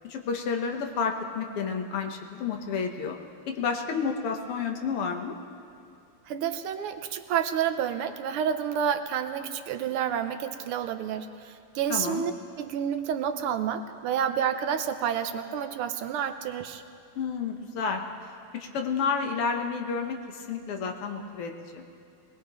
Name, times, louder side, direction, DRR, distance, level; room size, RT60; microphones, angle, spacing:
voice 1, 0.1-3.2 3.5-5.4 11.9-12.2 17.2-18.0 18.5-21.8, left 5 dB, 85° left, 3 dB, 2.1 m, -30 dB
voice 2, 6.3-12.3 12.6-16.8, right 8 dB, 80° right, 8 dB, 1.7 m, -29 dB
22.5 x 19.5 x 3.1 m, 2.6 s
omnidirectional pair, 2.4 m